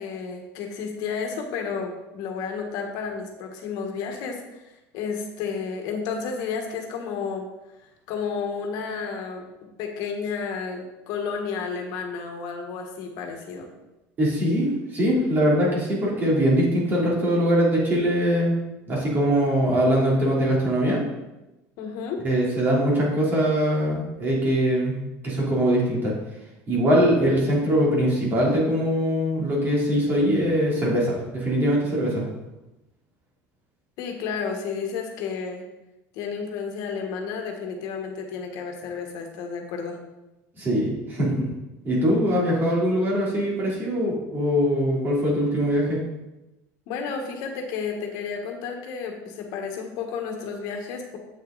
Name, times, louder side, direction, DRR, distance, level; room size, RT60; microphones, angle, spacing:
voice 1, 0.0-7.4 8.1-9.5 9.8-13.7 21.8-22.2 34.0-35.6 36.1-40.0 46.9-51.2, left 5 dB, 70° left, 3 dB, 1.3 m, -31 dB
voice 2, 14.2-18.6 18.9-21.0 22.2-26.1 26.7-32.2 40.6-41.5 41.8-46.0, equal, 30° right, -5 dB, 3.1 m, -22 dB
7.8 x 6.5 x 3.9 m, 1.0 s
cardioid pair, 140°, 7 cm